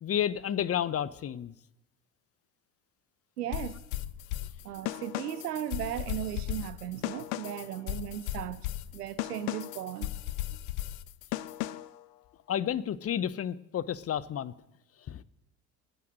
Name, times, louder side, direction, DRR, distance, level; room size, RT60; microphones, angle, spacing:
voice 1, 0.0-1.5 12.5-14.5 15.1-15.2, left 9 dB, 30° left, 0.9 m, -31 dB
voice 2, 3.4-3.8 4.6-8.7 8.9-10.1, right 11 dB, 80° right, 1.1 m, -36 dB
sound 1, 3.5-12.0, left 15 dB, 60° left, 0.8 m, -36 dB
22.0 x 9.5 x 6.4 m
figure-of-eight pair, 60°, 47 cm